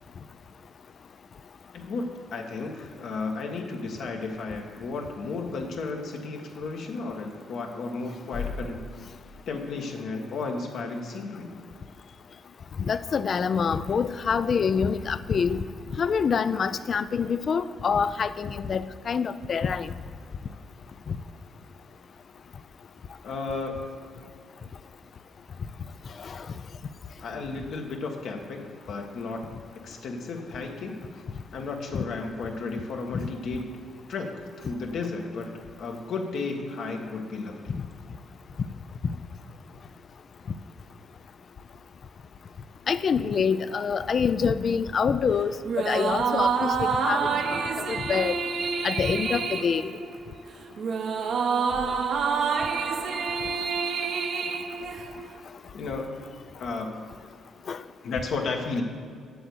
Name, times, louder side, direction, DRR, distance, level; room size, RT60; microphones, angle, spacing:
voice 1, 1.7-8.8 9.5-11.5 23.2-23.8 27.2-29.5 29.8-31.2 31.5-33.8 34.1-34.3 34.6-35.5 35.8-37.6 55.7-56.1 56.6-57.0 58.0-58.8, left 3 dB, 70° left, 2 dB, 1.4 m, -33 dB
voice 2, 12.8-15.7 16.0-19.9 21.1-21.2 26.2-26.5 31.9-32.0 37.7-37.8 42.9-47.2 47.5-47.6 47.9-48.4 48.8-49.9 57.7-57.8, left 6 dB, 50° left, 14 dB, 0.4 m, -26 dB
sound 1, 45.6-55.4, right 5 dB, 60° right, 0.9 m, -27 dB
7.8 x 6.7 x 7.8 m, 2.2 s
cardioid pair, 90°, 0 cm